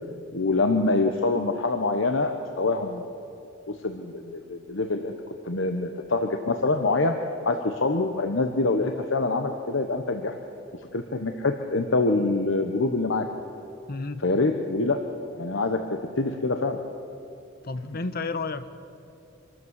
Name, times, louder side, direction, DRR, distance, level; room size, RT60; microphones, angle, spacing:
voice 1, 0.3-3.0 3.8-5.1 5.5-7.2 7.4-10.3 10.9-13.3 14.2-15.1 15.3-16.8 17.9-18.0, left 3 dB, 70° left, 5 dB, 1.1 m, -25 dB
voice 2, 13.9-14.2 17.6-18.7, left 3 dB, 50° left, 11 dB, 1.0 m, -31 dB
25.5 x 13.0 x 8.1 m, 2.8 s
head